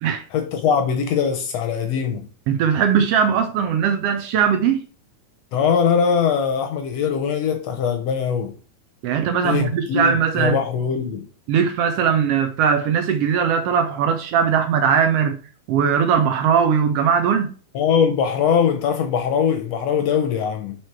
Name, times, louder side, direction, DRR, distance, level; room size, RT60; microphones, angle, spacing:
voice 1, 0.3-2.3 5.5-8.5 9.4-11.3 17.7-20.8, left 7 dB, 75° left, 1.6 m, -21 dB
voice 2, 2.5-4.8 9.0-10.6 11.5-15.4 15.7-17.5, right 7 dB, 75° right, 1.4 m, -19 dB
4.8 x 4.7 x 4.5 m
omnidirectional pair, 3.4 m